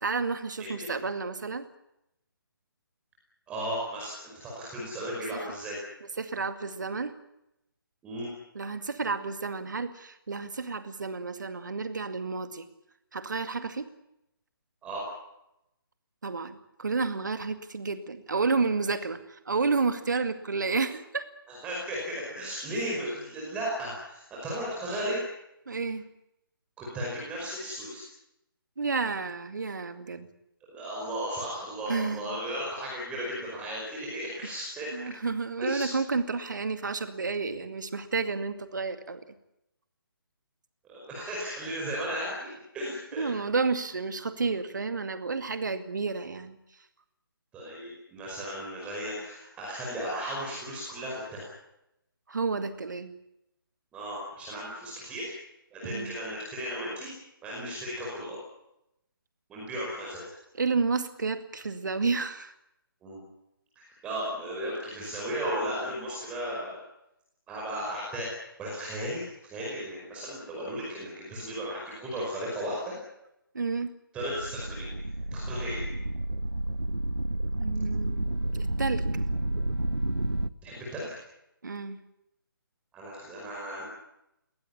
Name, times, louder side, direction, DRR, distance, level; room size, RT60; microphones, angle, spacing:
voice 1, 0.0-1.6 6.2-7.1 8.5-12.7 13.1-13.9 16.2-21.3 25.7-26.0 28.8-30.3 31.9-32.2 34.9-39.2 43.2-46.6 52.3-53.1 55.8-56.1 60.5-62.5 73.5-73.9 77.6-79.0 81.6-82.0, right 4 dB, 55° right, 10 dB, 2.2 m, -31 dB
voice 2, 3.5-5.8 8.0-8.3 14.8-15.0 20.7-20.8 21.5-25.2 26.8-28.0 30.7-35.1 35.6-35.9 40.8-43.2 47.5-51.5 53.9-55.3 55.7-57.1 57.4-58.4 59.5-60.2 63.0-63.2 63.8-66.8 67.5-68.3 68.6-73.0 74.1-74.9 75.3-75.8 80.6-81.1 82.9-83.8, equal, 10° right, -4 dB, 5.3 m, -35 dB
sound 1, 74.2-80.5, right 1 dB, 85° right, 1.1 m, -30 dB
21.5 x 17.5 x 9.8 m, 0.85 s
figure-of-eight pair, 145°, 12 cm